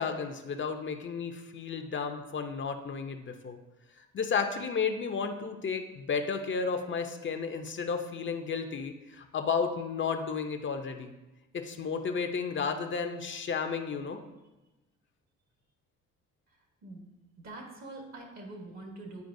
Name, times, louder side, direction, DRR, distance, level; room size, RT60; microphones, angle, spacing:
voice 1, 0.0-3.6 4.0-11.1 11.5-14.2, left 5 dB, 40° left, 6 dB, 0.6 m, -33 dB
voice 2, 17.4-19.2, right 2 dB, 60° right, 1 dB, 1.4 m, -44 dB
9.4 x 4.5 x 2.6 m, 1.0 s
cardioid pair, 90°, 30 cm